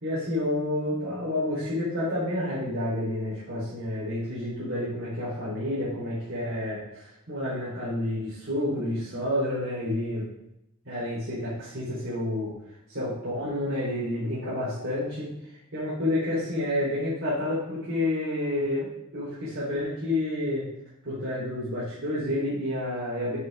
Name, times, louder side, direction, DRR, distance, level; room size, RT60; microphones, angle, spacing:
voice 1, 0.0-10.2 10.9-12.5 12.9-20.7 21.0-23.4, left 1 dB, 65° right, -9 dB, 3.5 m, -29 dB
8.2 x 7.1 x 3.5 m, 0.82 s
head